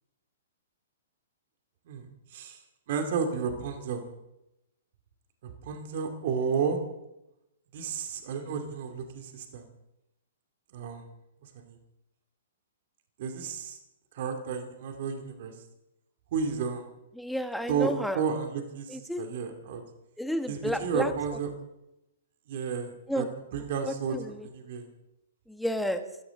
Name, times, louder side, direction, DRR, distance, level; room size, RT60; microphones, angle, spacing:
voice 1, 1.9-2.6 2.9-4.0 5.6-6.8 7.7-9.6 10.7-11.0 11.5-11.8 13.2-13.8 14.1-15.5 16.3-16.8 17.7-19.8 20.5-21.5 22.5-23.2 23.5-24.9, right 6 dB, 55° right, 5 dB, 2.6 m, -32 dB
voice 2, 17.2-18.2 18.9-19.2 20.2-21.1 23.1-23.3 23.8-24.5 25.5-26.0, equal, ahead, 8 dB, 1.4 m, -31 dB
26.0 x 13.5 x 3.9 m, 0.89 s
figure-of-eight pair, 120°, 0 cm